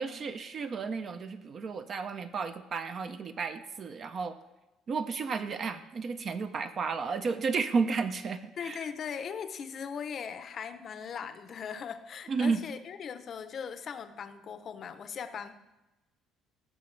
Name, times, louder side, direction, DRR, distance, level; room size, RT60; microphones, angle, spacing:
voice 1, 0.0-4.4 4.9-8.8 12.3-12.6, right 5 dB, 30° right, 10 dB, 0.4 m, -32 dB
voice 2, 8.6-15.6, left 7 dB, 35° left, 10 dB, 0.6 m, -39 dB
16.0 x 6.9 x 3.2 m, 1.0 s
cardioid pair, 165°, 0 cm